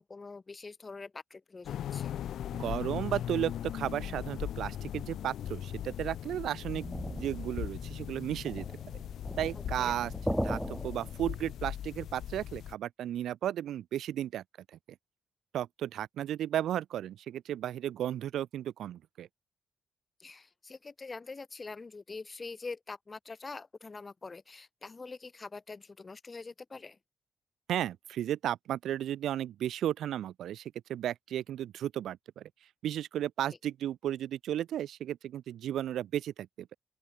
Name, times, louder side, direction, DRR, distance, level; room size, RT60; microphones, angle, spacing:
voice 1, 0.0-2.1 9.5-9.9 20.2-27.0, left 4 dB, 30° left, 1.4 m, -44 dB
sound 1, 1.6-12.7, left 10 dB, 85° left, 1.3 m, -39 dB
voice 2, 2.5-6.8 7.1-8.7 9.4-10.1 10.4-14.4 15.5-19.3 27.7-32.5 32.8-36.8, right 11 dB, 90° right, 1.2 m, -34 dB
sound 2, 6.7-11.7, equal, 5° right, 0.4 m, -38 dB
open air
cardioid pair, 90°, 0 cm